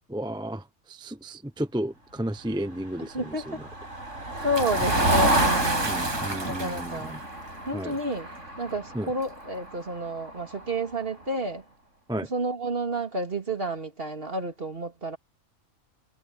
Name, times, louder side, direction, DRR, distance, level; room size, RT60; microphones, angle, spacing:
voice 1, 0.1-3.2 3.5-3.6 4.3-4.4 5.8-7.2 7.7-7.9 8.9-9.1 12.1-12.3, right 1 dB, 5° right, 0.8 m, -33 dB
voice 2, 3.0-3.7 4.4-6.0 6.4-7.2 7.7-8.3 8.6-11.6 12.2-15.2, right 1 dB, 45° right, 2.8 m, -30 dB
Motor vehicle (road), 3.1-10.9, right 1 dB, 65° right, 7.6 m, -29 dB
Bathtub (filling or washing) / Splash splatter, 4.5-7.1 8.1-8.2 9.2-9.3, right 2 dB, 20° right, 1.2 m, -31 dB
omnidirectional pair, 1.4 m